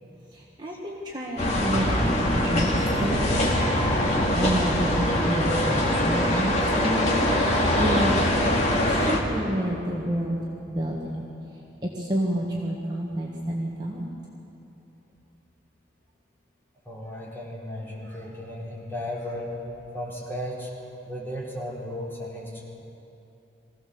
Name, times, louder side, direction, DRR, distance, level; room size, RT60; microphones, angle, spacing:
voice 1, 0.3-3.4 4.3-7.2 7.8-8.2 8.7-10.4 10.6-11.3 11.8-14.0, equal, 25° right, -3 dB, 1.7 m, -29 dB
sound 1, 1.4-9.2, left 1 dB, 35° left, 2.3 m, -23 dB
voice 2, 16.9-19.6 19.9-20.7 21.0-22.6, left 1 dB, 10° left, -6 dB, 3.9 m, -35 dB
23.5 x 16.0 x 7.0 m, 2.8 s
head